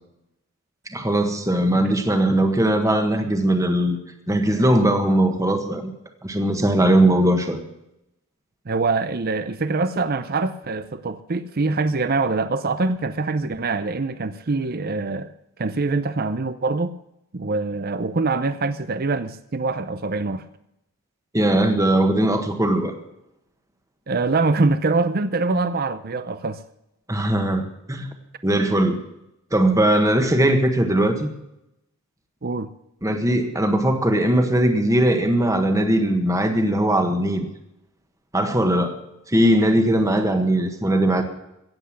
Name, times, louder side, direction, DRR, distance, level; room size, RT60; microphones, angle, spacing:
voice 1, 0.9-4.0 4.3-5.9 6.2-7.6 21.3-22.9 27.1-28.1 28.4-29.0 29.5-31.3 33.0-37.5 38.3-39.0 39.3-41.2, right 1 dB, 15° right, 1.5 m, -19 dB
voice 2, 8.7-15.3 15.6-16.9 17.3-20.4 24.1-26.6 32.4-32.7, right 3 dB, 45° right, 0.6 m, -24 dB
17.0 x 8.1 x 7.5 m
head